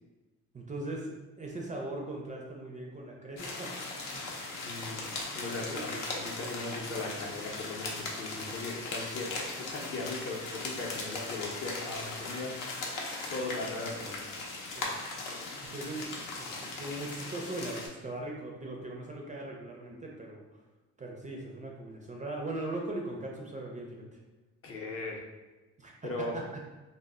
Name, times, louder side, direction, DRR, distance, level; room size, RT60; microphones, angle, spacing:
voice 1, 0.5-3.7 4.1-4.4 5.5-5.8 14.7-15.0 15.6-16.1 16.4-20.4 21.0-24.0 25.8-25.9 26.2-26.4, right 2 dB, 25° right, -1 dB, 0.4 m, -39 dB
sound 1, 3.4-17.9, left 3 dB, 85° left, 0.6 m, -39 dB
voice 2, 4.5-5.0 5.3-12.9 13.3-14.2 24.6-25.2 26.0-26.3, left 2 dB, 45° left, 0 dB, 0.6 m, -38 dB
2.1 x 2.1 x 3.5 m, 1.2 s
cardioid pair, 95°, 31 cm